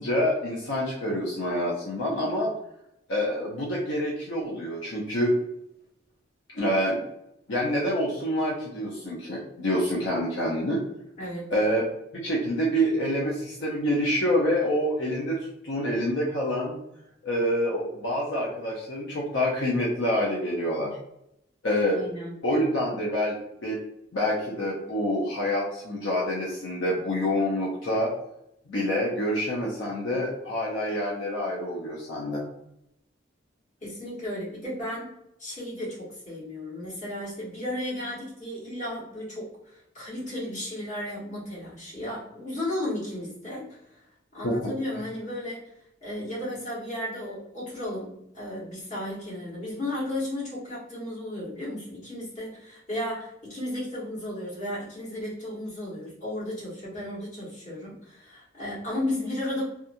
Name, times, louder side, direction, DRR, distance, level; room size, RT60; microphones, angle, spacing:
voice 1, 0.0-2.5 3.1-5.3 6.6-7.0 7.5-10.8 11.5-15.4 15.6-16.8 17.2-21.0 21.6-22.0 22.4-23.4 23.6-23.8 24.1-28.1 28.7-32.4 44.4-44.7, equal, 70° left, -4 dB, 0.6 m, -27 dB
voice 2, 11.2-11.5 21.9-22.4 33.8-35.1 35.4-43.8 44.3-45.7 46.0-59.6, left 1 dB, 40° left, -8 dB, 1.4 m, -34 dB
2.9 x 2.4 x 2.5 m, 0.79 s
head